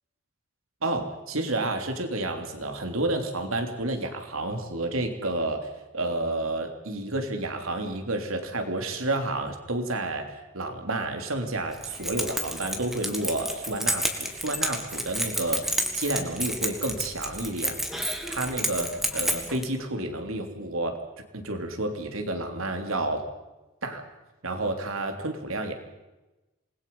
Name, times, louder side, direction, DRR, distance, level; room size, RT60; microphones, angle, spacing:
voice 1, 0.8-17.8 18.3-21.0 21.3-23.2 23.8-24.0 24.4-25.7, right 2 dB, 75° right, 5 dB, 3.1 m, -30 dB
Keys jangling, 11.7-19.7, equal, ahead, 2.0 m, -30 dB
27.5 x 21.0 x 5.5 m, 1.0 s
head